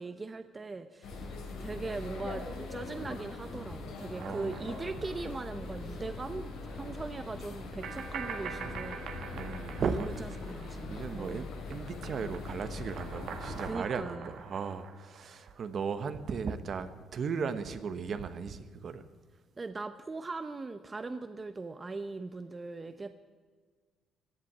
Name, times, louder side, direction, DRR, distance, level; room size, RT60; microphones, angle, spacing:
voice 1, 0.0-1.3 1.6-9.0 9.9-11.5 13.6-14.3 19.6-23.1, right 3 dB, 30° right, 10 dB, 0.7 m, -40 dB
sound 1, 1.0-13.7, left 3 dB, 85° left, 3.4 m, -42 dB
voice 2, 4.1-4.6 8.7-8.8 9.3-10.2 10.8-19.0, right 5 dB, 55° right, 11 dB, 1.2 m, -36 dB
sound 2, 4.1-5.8 6.1-6.2 7.8-11.3 11.6-15.8, right 6 dB, 75° right, 1.7 m, -45 dB
16.0 x 7.6 x 9.9 m, 1.5 s
cardioid pair, 80°, 0 cm